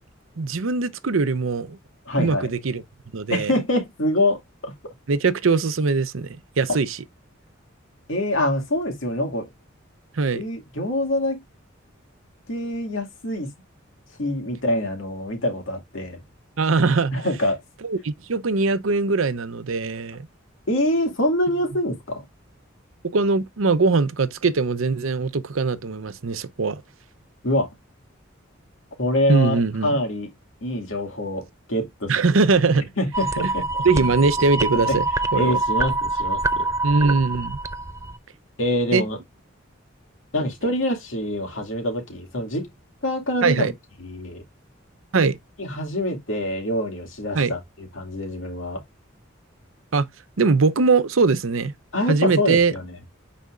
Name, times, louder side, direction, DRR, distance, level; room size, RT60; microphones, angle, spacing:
voice 1, 0.4-1.8 2.2-2.8 3.1-3.5 5.1-7.0 10.2-10.4 16.6-17.1 17.8-20.3 23.0-26.8 29.3-29.9 32.1-32.8 33.4-33.5 33.8-35.0 35.3-35.6 36.8-37.6 38.9-39.0 43.4-43.7 45.1-45.4 47.3-47.5 49.9-50.1 50.4-51.7 52.1-52.7, right 4 dB, 80° right, 0.7 m, -21 dB
voice 2, 2.1-2.5 3.3-4.9 6.7-6.8 8.1-9.5 10.3-11.4 12.5-13.5 14.2-16.2 17.1-17.6 20.7-22.2 27.4-27.7 29.0-30.3 30.6-32.1 33.0-33.7 34.9-35.0 35.3-36.7 38.6-39.2 40.3-42.7 43.0-43.7 44.0-44.4 45.6-48.8 51.9-52.9, left 1 dB, 70° left, 2.2 m, -25 dB
sound 1, 33.1-38.2, right 2 dB, 15° right, 0.5 m, -25 dB
9.2 x 4.2 x 2.4 m
head